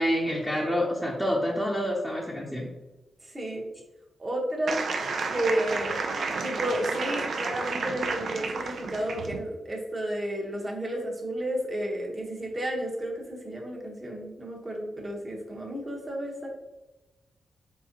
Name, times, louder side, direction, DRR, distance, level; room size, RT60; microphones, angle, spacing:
voice 1, 0.0-2.7, equal, 5° left, -4 dB, 0.7 m, -27 dB
voice 2, 3.2-3.7 4.2-4.8 5.3-5.9 6.4-16.5, right 1 dB, 30° right, -1 dB, 1.2 m, -32 dB
sound 1, 4.7-9.4, right 4 dB, 70° right, 0.5 m, -31 dB
4.5 x 3.5 x 2.9 m, 1.1 s
cardioid pair, 75°, 0 cm